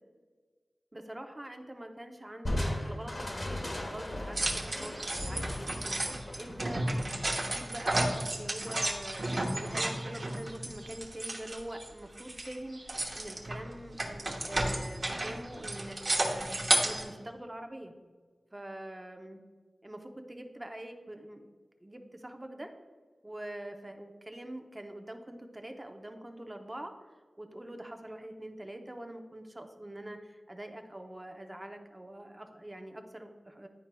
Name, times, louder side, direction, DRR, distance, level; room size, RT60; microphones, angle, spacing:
voice 1, 0.9-9.2 9.5-16.5 16.8-17.9 18.5-19.4 19.8-21.5 21.8-22.7 23.2-26.9 27.4-33.7, right 1 dB, 20° right, 5 dB, 0.6 m, -44 dB
Crushing, 2.4-7.8, left 1 dB, 40° left, 0.9 m, -37 dB
sound 1, 4.4-11.9 12.2-17.0, right 1 dB, 50° right, 1.0 m, -32 dB
10.5 x 4.5 x 2.2 m, 1.4 s
wide cardioid pair, 90°, 0 cm